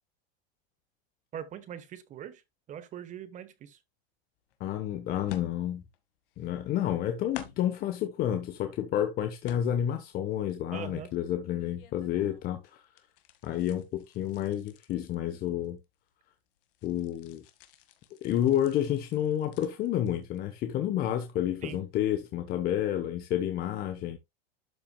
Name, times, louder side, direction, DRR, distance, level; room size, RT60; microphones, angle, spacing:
voice 1, 1.3-2.4 2.7-3.8 10.7-11.1 21.6-21.8, right 9 dB, 25° right, 1.1 m, -41 dB
sound 1, 4.5-4.6 5.3-6.0 6.3-7.0 7.3-7.8 8.4-9.0 9.4-10.1 10.5-12.6 12.8-16.1 16.4-20.6 20.9-21.2 21.6-21.7, left 11 dB, 60° left, 1.8 m, -51 dB
voice 2, 4.6-5.8 6.4-12.8 13.4-15.8 16.8-17.4 18.2-24.2, left 11 dB, 30° left, 1.0 m, -30 dB
12.5 x 5.7 x 2.3 m
supercardioid pair, 145°, 30 cm